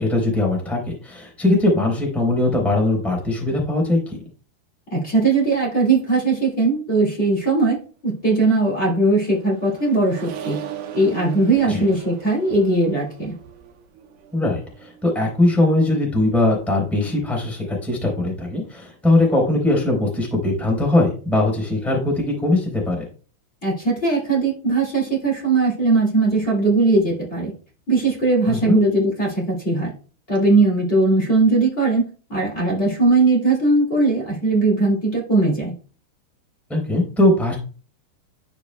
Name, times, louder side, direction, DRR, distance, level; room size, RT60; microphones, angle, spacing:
voice 1, 0.0-4.2 11.7-11.8 14.3-23.0 28.5-28.8 36.7-37.6, left 2 dB, ahead, -1 dB, 2.8 m, -20 dB
voice 2, 4.9-7.8 8.0-10.6 10.9-13.3 23.6-27.5 27.9-29.9 30.3-32.0 32.3-35.7, right 3 dB, 60° left, -2 dB, 0.6 m, -19 dB
Accelerating revving vroom, 8.7-15.4, right 9 dB, 70° right, 2.1 m, -38 dB
13.0 x 5.1 x 2.2 m, 0.38 s
omnidirectional pair, 5.1 m